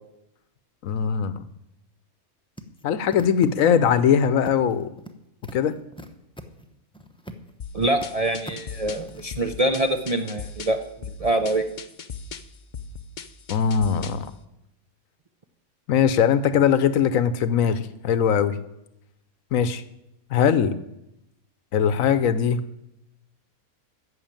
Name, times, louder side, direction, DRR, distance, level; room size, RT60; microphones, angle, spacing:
voice 1, 0.8-1.4 2.8-4.9 5.5-5.8 13.5-14.3 15.9-18.6 19.5-19.8 20.3-20.8 21.7-22.6, left 7 dB, 75° left, 14 dB, 1.1 m, -21 dB
sound 1, 2.6-4.0 4.4-5.1 5.4-7.5 7.8-8.1 8.5-9.3, right 1 dB, 5° left, 0.7 m, -41 dB
sound 2, 7.6-14.3, left 5 dB, 45° left, 0.7 m, -39 dB
voice 2, 7.7-11.6, right 1 dB, 40° right, 5 dB, 0.5 m, -25 dB
14.5 x 6.4 x 8.9 m, 0.86 s
omnidirectional pair, 1.5 m